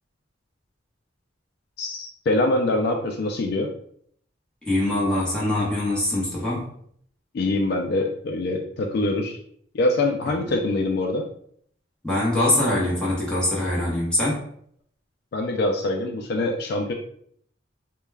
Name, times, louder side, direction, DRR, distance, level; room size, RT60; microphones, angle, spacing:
voice 1, 1.8-3.7 7.3-9.4 9.7-11.2 15.3-16.9, left 2 dB, 55° left, 3 dB, 0.3 m, -24 dB
voice 2, 4.7-6.7 12.0-14.5, left 1 dB, 5° left, -6 dB, 0.8 m, -23 dB
2.2 x 2.1 x 3.2 m, 0.64 s
head